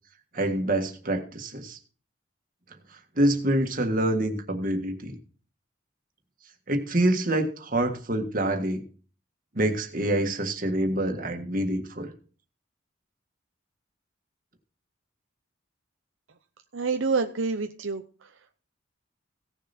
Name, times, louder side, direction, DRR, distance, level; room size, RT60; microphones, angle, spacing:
voice 1, 0.3-1.8 3.2-5.2 6.7-8.8 9.6-12.1, right 1 dB, 45° right, 4 dB, 1.7 m, -26 dB
voice 2, 16.7-18.3, right 4 dB, 75° right, 6 dB, 0.7 m, -28 dB
16.5 x 6.8 x 4.3 m, 0.40 s
head